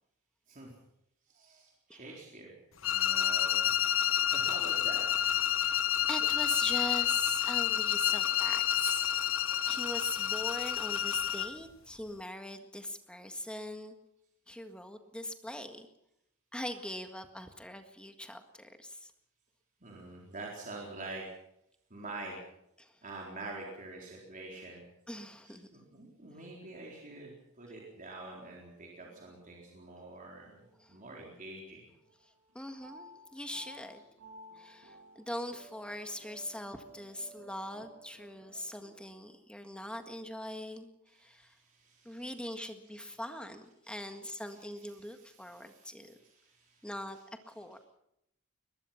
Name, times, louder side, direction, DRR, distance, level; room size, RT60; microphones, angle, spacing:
voice 1, 1.3-2.5 2.8-5.4 19.8-21.3 21.9-22.4 23.0-24.8 25.4-30.6 30.9-31.8 41.1-43.5 43.8-47.8, right 2 dB, 40° right, -2 dB, 4.1 m, -47 dB
sound 1, 2.8-11.6, left 11 dB, 65° left, 1.1 m, -29 dB
voice 2, 5.5-9.1 9.6-13.9 14.5-15.9 16.5-19.1 22.8-22.9 25.1-25.7 30.8-30.9 32.5-34.0 34.5-40.9 41.2-41.5 42.0-46.2 46.8-47.2 47.5-47.8, left 1 dB, 5° left, 6 dB, 1.7 m, -41 dB
sound 2, 28.2-31.7 32.0-39.3, right 1 dB, 85° right, 6.3 m, -57 dB
22.0 x 21.0 x 5.8 m, 0.80 s
head